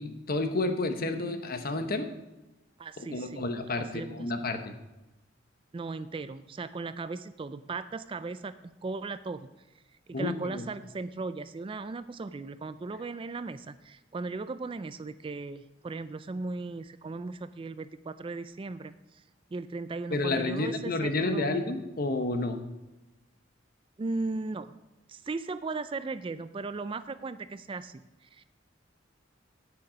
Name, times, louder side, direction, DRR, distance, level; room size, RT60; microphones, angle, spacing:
voice 1, 0.0-2.1 3.0-4.7 10.1-10.7 20.1-22.6, left 2 dB, 50° left, 7 dB, 1.0 m, -30 dB
voice 2, 2.8-3.4 3.9-4.3 5.7-8.5 8.8-9.5 10.1-19.2 19.5-21.5 24.0-24.7 25.1-28.4, right 3 dB, 25° right, 13 dB, 0.3 m, -37 dB
9.5 x 9.3 x 5.1 m, 1.0 s
head